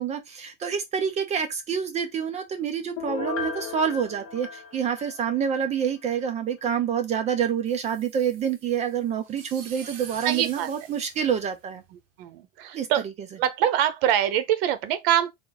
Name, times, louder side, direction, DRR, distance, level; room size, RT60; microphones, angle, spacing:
voice 1, 0.0-11.8 12.7-12.9, right 8 dB, 25° right, 0.4 m, -27 dB
Piano, 3.0-5.7 6.0-6.1, left 5 dB, 45° left, 1.1 m, -35 dB
sound 1, 7.7-12.0, right 6 dB, 50° right, 1.2 m, -46 dB
voice 2, 10.2-10.7 12.2-13.0 13.4-15.3, right 10 dB, 80° right, 0.8 m, -24 dB
3.6 x 2.5 x 3.8 m
cardioid pair, 165°, 29 cm